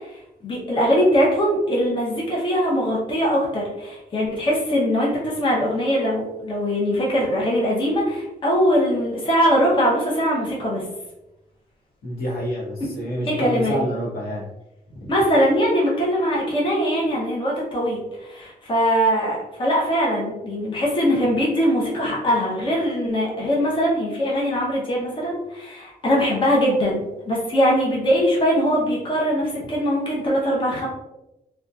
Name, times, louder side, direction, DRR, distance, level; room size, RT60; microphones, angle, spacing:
voice 1, 0.0-10.8 13.3-13.8 15.1-30.9, equal, 35° left, -4 dB, 0.8 m, -21 dB
voice 2, 12.0-14.5 14.9-15.1, equal, 80° left, -5 dB, 1.1 m, -28 dB
2.8 x 2.4 x 2.3 m, 0.92 s
wide cardioid pair, 135°, 15 cm